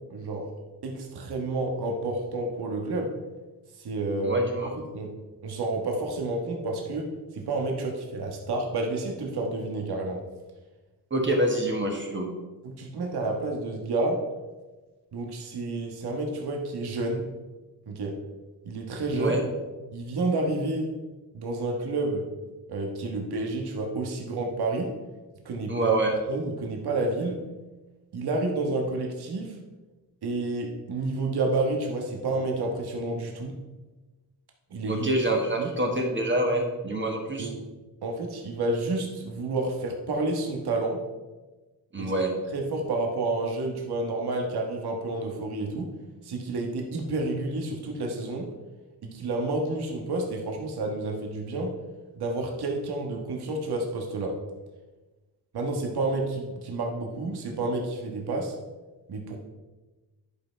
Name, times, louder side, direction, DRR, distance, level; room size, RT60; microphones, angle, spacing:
voice 1, 0.1-0.5 0.8-3.1 3.8-4.7 4.9-5.1 5.4-7.1 7.3-10.2 12.6-14.2 15.1-17.2 17.9-18.2 18.6-19.3 19.9-20.9 21.3-22.3 22.7-24.9 25.4-25.7 26.3-27.4 28.1-29.6 30.2-33.5 34.7-35.0 35.6-35.7 37.4-37.6 38.0-41.0 42.0-42.1 42.5-45.9 46.2-48.5 49.0-51.8 52.1-54.4 55.5-58.5 59.1-59.4, right 2 dB, 80° right, 1 dB, 1.4 m, -30 dB
voice 2, 4.2-4.8 11.1-12.3 19.1-19.4 25.7-26.2 34.9-37.5 41.9-42.3, right 1 dB, 30° right, 0 dB, 1.4 m, -26 dB
10.5 x 5.6 x 4.5 m, 1.2 s
wide cardioid pair, 125°, 39 cm